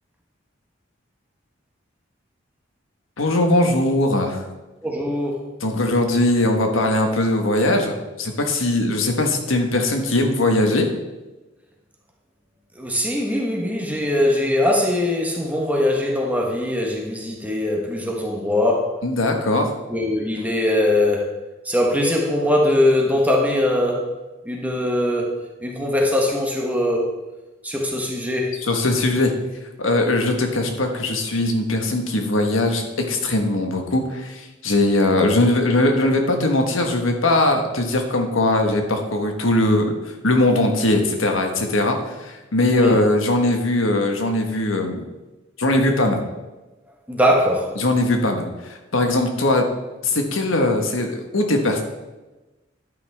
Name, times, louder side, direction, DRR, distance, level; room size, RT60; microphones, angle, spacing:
voice 1, 3.2-4.4 5.6-10.9 19.0-19.7 28.6-29.3 29.8-39.9 40.2-45.0 45.6-46.2 47.8-49.6 50.0-51.8, left 2 dB, 90° left, 4 dB, 1.5 m, -20 dB
voice 2, 4.8-5.5 12.8-19.0 19.9-21.3 21.6-24.1 24.4-25.3 25.6-27.1 27.6-28.6 42.7-43.0 47.1-47.7, left 1 dB, 10° right, -1 dB, 1.3 m, -21 dB
11.0 x 9.3 x 3.5 m, 1.1 s
head